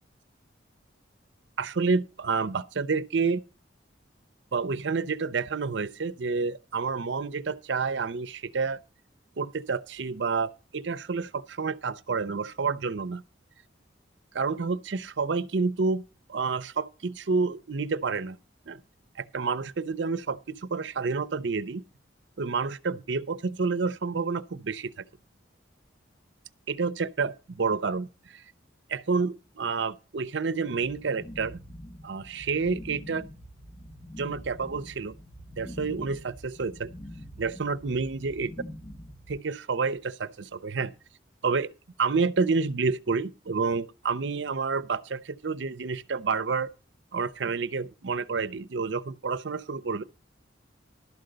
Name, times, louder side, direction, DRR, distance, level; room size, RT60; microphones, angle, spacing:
voice 1, 1.6-3.4 4.5-8.8 9.4-13.2 14.3-16.0 16.3-18.4 18.7-18.8 19.2-21.8 22.4-25.0 26.7-28.4 28.9-31.6 32.0-33.2 34.2-35.1 35.6-36.9 37.4-38.5 39.3-40.9 41.4-41.7 42.0-46.7 47.1-50.0, right 4 dB, 65° right, 0.6 m, -29 dB
sound 1, 30.8-39.4, equal, 30° left, 1.0 m, -44 dB
12.0 x 5.2 x 7.8 m
head